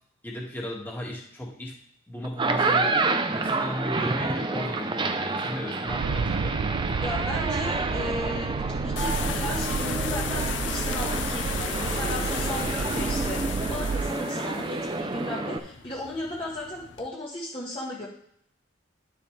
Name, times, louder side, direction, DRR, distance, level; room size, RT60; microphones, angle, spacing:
voice 1, 0.2-1.7 2.1-6.5, left 1 dB, 10° left, -3 dB, 1.8 m, -35 dB
sound 1, 2.2-15.6, right 3 dB, 25° right, 0.5 m, -29 dB
sound 2, 5.9-14.1, right 5 dB, 80° right, 0.4 m, -31 dB
voice 2, 7.0-8.5 8.8-18.1, left 1 dB, 30° left, -5 dB, 1.5 m, -35 dB
sound 3, 9.0-17.1, left 8 dB, 70° left, 0.6 m, -36 dB
10.5 x 6.9 x 3.3 m, 0.70 s
head